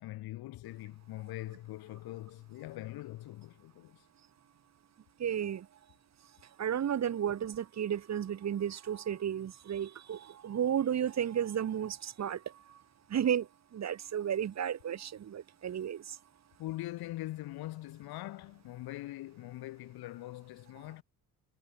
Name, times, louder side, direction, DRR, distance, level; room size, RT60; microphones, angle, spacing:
voice 1, 0.0-4.0 16.6-21.0, left 16 dB, 80° left, 0.9 m, -42 dB
voice 2, 5.2-5.7 6.6-12.8 13.1-16.2, right 9 dB, 45° right, 0.9 m, -33 dB
supercardioid pair, 70°, 37 cm